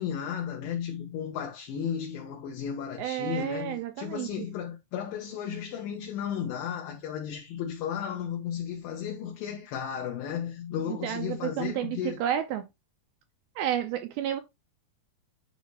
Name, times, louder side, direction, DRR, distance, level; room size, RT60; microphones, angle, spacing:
voice 1, 0.0-12.2, left 8 dB, 70° left, 2.5 m, -34 dB
voice 2, 3.0-4.5 10.9-12.6 13.6-14.4, right 11 dB, 80° right, 2.3 m, -31 dB
9.5 x 3.9 x 3.2 m
omnidirectional pair, 4.7 m